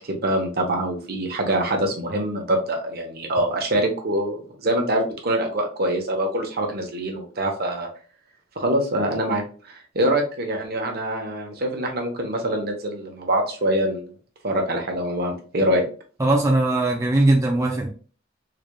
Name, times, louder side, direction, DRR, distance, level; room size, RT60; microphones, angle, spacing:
voice 1, 0.0-7.9 8.6-14.1 14.4-15.8, right 1 dB, 55° right, 3 dB, 1.0 m, -24 dB
voice 2, 16.2-17.9, right 2 dB, 15° right, 0 dB, 0.5 m, -19 dB
3.8 x 3.3 x 2.2 m, 0.39 s
head